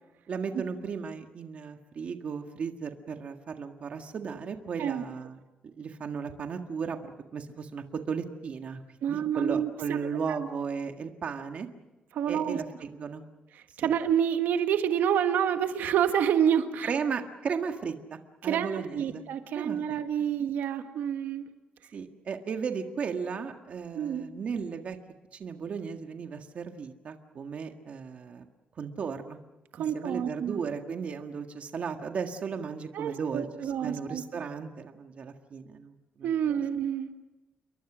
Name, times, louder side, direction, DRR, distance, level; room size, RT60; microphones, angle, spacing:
voice 1, 0.3-7.0 7.3-8.8 9.1-11.7 12.3-13.2 13.8-13.9 16.8-19.2 19.5-20.0 21.9-25.0 25.4-28.5 28.8-29.4 29.8-36.4, right 6 dB, 45° right, 5 dB, 1.7 m, -35 dB
voice 2, 9.0-10.4 12.1-12.6 13.8-16.9 18.4-21.4 23.9-24.3 29.8-30.6 32.9-34.2 36.2-37.1, right 9 dB, 85° right, 7 dB, 1.5 m, -28 dB
28.5 x 23.0 x 6.2 m, 1.1 s
cardioid pair, 165°, 3 cm